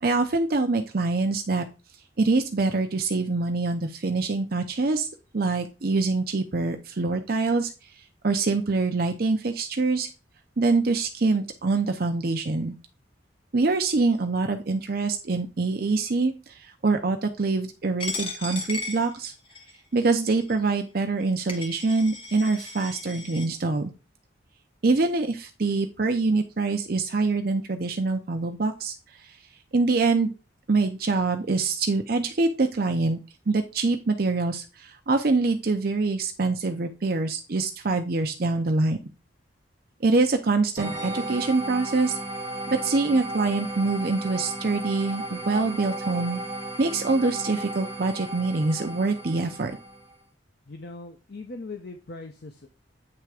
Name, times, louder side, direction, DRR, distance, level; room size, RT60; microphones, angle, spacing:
voice 1, 0.0-1.7 2.2-5.1 5.3-7.9 8.2-10.1 10.6-12.7 13.5-19.3 19.9-23.9 24.8-29.4 29.7-30.3 30.7-33.2 33.5-39.0 40.0-42.2 42.7-46.4 46.8-49.8, right 3 dB, 50° right, 5 dB, 0.6 m, -25 dB
Coin (dropping), 18.0-19.8 20.4-20.5 21.2-21.3 21.5-23.5, left 3 dB, 30° left, 1.3 m, -36 dB
sound 1, 40.8-50.1, right 1 dB, 15° right, 1.7 m, -35 dB
voice 2, 50.7-52.7, left 3 dB, 55° left, 4 dB, 0.7 m, -40 dB
8.7 x 3.4 x 4.8 m, 0.31 s
head